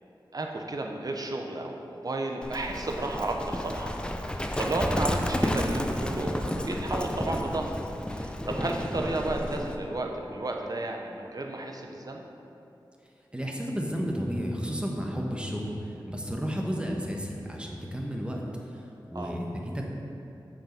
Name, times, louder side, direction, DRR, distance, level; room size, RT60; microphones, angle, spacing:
voice 1, 0.3-4.1 4.6-7.7 8.1-12.2 19.1-19.4, right 2 dB, 50° right, 2 dB, 0.8 m, -33 dB
Livestock farm animals working animals, 2.4-9.8, left 1 dB, 10° left, 0.5 m, -31 dB
voice 2, 13.3-19.8, equal, 10° right, -1 dB, 1.1 m, -32 dB
7.3 x 5.0 x 5.2 m, 2.8 s
wide cardioid pair, 55°, 9 cm